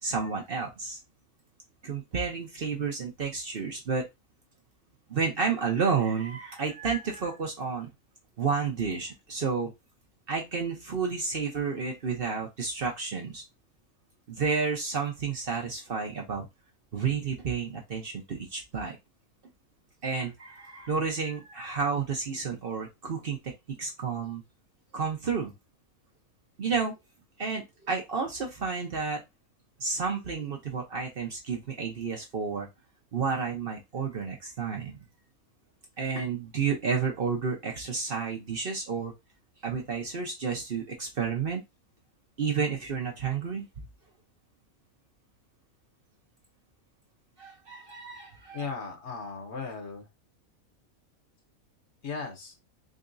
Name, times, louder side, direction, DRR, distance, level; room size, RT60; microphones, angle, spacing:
voice 1, 0.0-1.0 1.8-4.1 5.1-7.9 8.4-9.7 10.3-13.4 14.3-16.5 16.9-19.0 20.0-23.5 23.8-24.4 24.9-25.5 26.6-26.9 27.4-29.2 29.8-32.7 33.1-35.0 36.0-39.1 39.6-41.6 42.4-43.7 47.4-48.6, right 5 dB, 45° right, 1 dB, 0.9 m, -31 dB
voice 2, 48.5-50.1 52.0-52.6, left 5 dB, 55° left, 3 dB, 1.1 m, -37 dB
3.8 x 3.5 x 2.6 m, 0.20 s
omnidirectional pair, 1.5 m